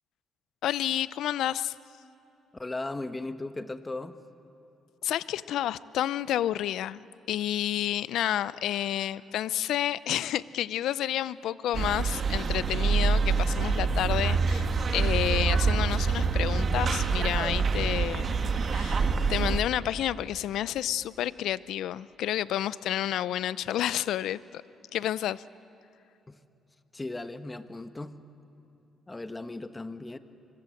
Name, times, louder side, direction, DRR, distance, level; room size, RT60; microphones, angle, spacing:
voice 1, 0.6-1.7 5.0-14.7 14.9-18.4 18.7-24.6 24.9-25.4, left 12 dB, 80° left, 17 dB, 0.5 m, -30 dB
voice 2, 2.5-4.2 26.3-26.4 26.9-28.1 29.1-30.2, left 2 dB, 20° left, 10 dB, 1.2 m, -37 dB
sound 1, 11.7-19.6, right 5 dB, 50° right, 1.3 m, -26 dB
25.5 x 22.5 x 7.8 m, 2.8 s
cardioid pair, 90°, 0 cm